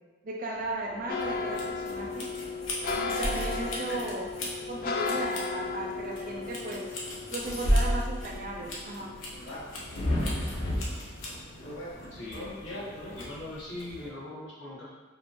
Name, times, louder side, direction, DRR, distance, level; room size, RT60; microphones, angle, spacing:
voice 1, 0.2-2.3 2.9-4.3 4.7-7.0 7.3-9.2, right 2 dB, 45° right, -1 dB, 0.6 m, -36 dB
sound 1, 0.5-13.2, equal, 20° left, 1.2 m, -52 dB
sound 2, 1.1-10.3 10.7-11.7 12.1-12.4 12.7-12.9, left 4 dB, 45° left, 0.3 m, -36 dB
sound 3, 1.2-14.1, equal, 85° left, 0.9 m, -34 dB
voice 2, 12.1-12.5 13.1-14.9, left 1 dB, 70° left, -8 dB, 1.5 m, -41 dB
4.8 x 2.5 x 3.3 m, 1.2 s
head